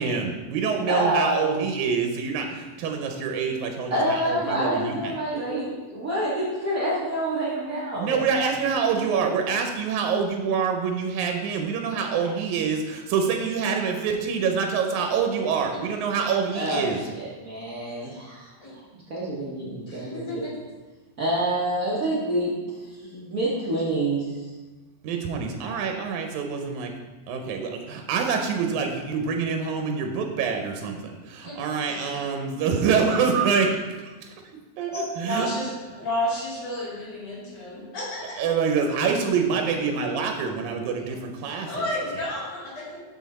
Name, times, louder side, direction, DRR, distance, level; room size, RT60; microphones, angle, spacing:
voice 1, 0.0-5.2 8.0-17.0 25.0-26.9 27.3-34.3 34.8-35.5 38.4-41.7, right 6 dB, 85° right, 3 dB, 2.1 m, -26 dB
voice 2, 0.9-1.6 3.9-8.3 16.5-18.5 18.9-20.4 21.2-24.4 34.9-35.1, right 1 dB, 70° right, -7 dB, 0.8 m, -27 dB
voice 3, 19.9-20.6 31.4-32.3 35.2-38.5 41.4-43.0, left 1 dB, 60° left, -7 dB, 3.5 m, -32 dB
6.4 x 6.1 x 4.1 m, 1.2 s
omnidirectional pair, 3.3 m